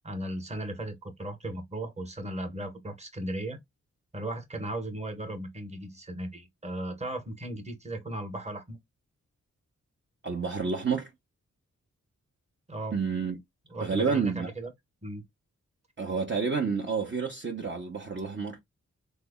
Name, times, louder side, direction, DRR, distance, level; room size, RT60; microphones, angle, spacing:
voice 1, 0.0-3.6 4.1-8.8 12.7-13.0 13.7-14.7 15.0-15.2, right 1 dB, 20° right, 1.2 m, -36 dB
voice 2, 10.2-11.1 12.9-13.4 13.8-14.5 16.0-18.6, right 5 dB, 35° right, 0.9 m, -29 dB
3.3 x 2.1 x 3.6 m
cardioid pair, 50°, 31 cm